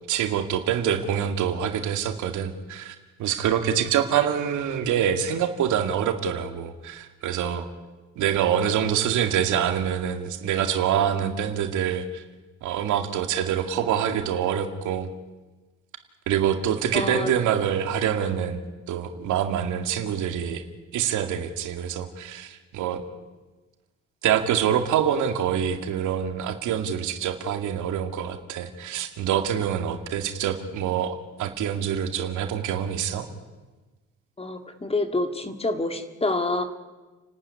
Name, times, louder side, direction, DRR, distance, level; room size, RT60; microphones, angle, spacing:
voice 1, 0.1-7.7 8.2-12.2 12.6-15.1 16.3-18.6 18.9-20.6 20.9-23.0 24.2-33.3, right 9 dB, 85° right, 6 dB, 2.2 m, -25 dB
voice 2, 16.9-17.3 34.4-36.6, left 2 dB, 20° left, 7 dB, 2.3 m, -27 dB
29.5 x 12.5 x 9.8 m, 1.2 s
cardioid pair, 100°, 29 cm